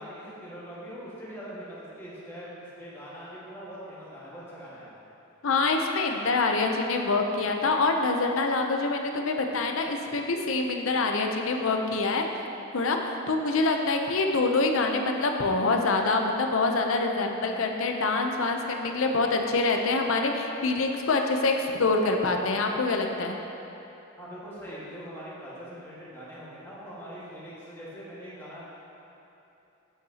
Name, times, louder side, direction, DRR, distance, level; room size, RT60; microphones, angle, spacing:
voice 1, 0.0-4.9 24.2-28.6, equal, 10° left, -9 dB, 1.6 m, -42 dB
voice 2, 5.4-12.2 12.7-23.4, left 3 dB, 70° left, 3 dB, 0.6 m, -25 dB
8.6 x 8.1 x 2.8 m, 3.0 s
head